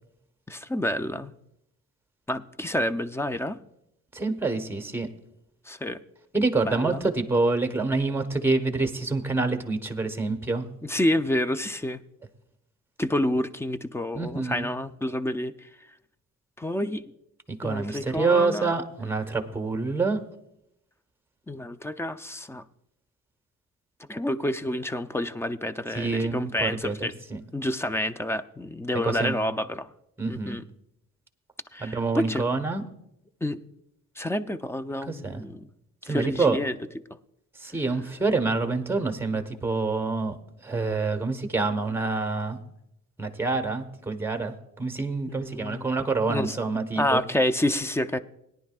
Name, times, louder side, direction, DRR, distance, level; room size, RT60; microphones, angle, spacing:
voice 1, 0.5-1.3 2.3-3.6 5.7-6.0 6.6-7.0 10.8-12.0 13.0-15.7 16.6-17.1 17.6-18.8 21.5-22.6 24.1-27.1 27.5-29.9 30.3-30.6 31.7-32.5 33.4-33.6 34.2-35.7 36.1-36.8 45.3-45.9 46.3-46.6 47.0-48.2, left 1 dB, 10° left, 12 dB, 0.5 m, -28 dB
voice 2, 4.1-5.1 6.3-10.7 14.1-14.7 17.5-20.2 26.0-27.4 29.0-29.3 30.2-30.6 31.8-32.8 35.0-35.4 36.0-36.6 37.6-40.4 40.6-42.6 43.2-47.2, right 3 dB, 10° right, 6 dB, 1.2 m, -27 dB
18.0 x 10.5 x 2.4 m, 0.81 s
cardioid pair, 90°, 30 cm